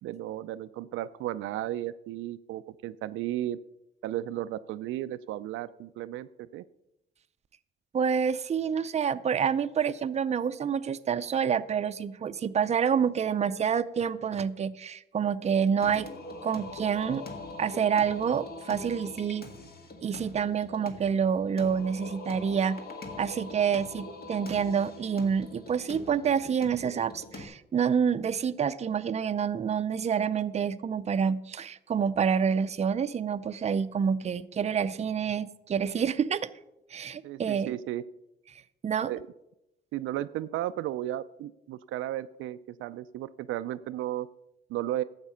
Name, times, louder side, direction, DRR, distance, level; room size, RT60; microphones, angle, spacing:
voice 1, 0.0-3.6 4.0-6.6 37.2-38.1 39.0-39.3 39.9-44.3 44.7-45.0, right 13 dB, 85° right, 13 dB, 0.4 m, -34 dB
voice 2, 7.9-16.1 16.4-17.2 17.6-19.5 20.0-22.8 23.2-36.5 36.9-37.8 38.5-39.1, right 7 dB, 35° right, 12 dB, 0.5 m, -28 dB
Singing, 15.8-27.4, left 2 dB, 50° left, 1.8 m, -43 dB
12.0 x 8.1 x 5.6 m, 0.88 s
cardioid pair, 90°, 20 cm